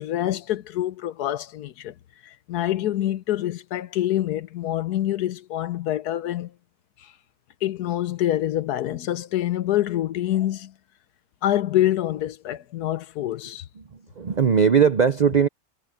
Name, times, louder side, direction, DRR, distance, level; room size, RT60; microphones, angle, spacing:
voice 1, 0.0-1.9 2.2-6.5 7.0-7.1 7.6-10.7 11.4-13.6, left 13 dB, 80° left, 1.3 m, -26 dB
voice 2, 13.8-15.5, right 6 dB, 60° right, 0.4 m, -19 dB
omnidirectional pair, 1.6 m